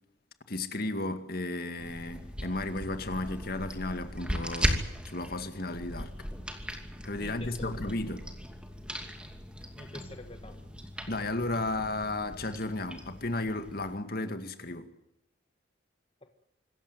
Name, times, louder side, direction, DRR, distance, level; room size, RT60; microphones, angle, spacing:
voice 1, 0.5-6.1 7.0-8.2 11.1-14.9, left 2 dB, 50° left, 2.1 m, -34 dB
sound 1, 1.8-13.9, equal, 5° right, 2.7 m, -38 dB
voice 2, 7.2-7.8 9.8-10.7 16.2-16.3, left 2 dB, 30° left, 1.5 m, -46 dB
26.0 x 14.5 x 9.3 m
head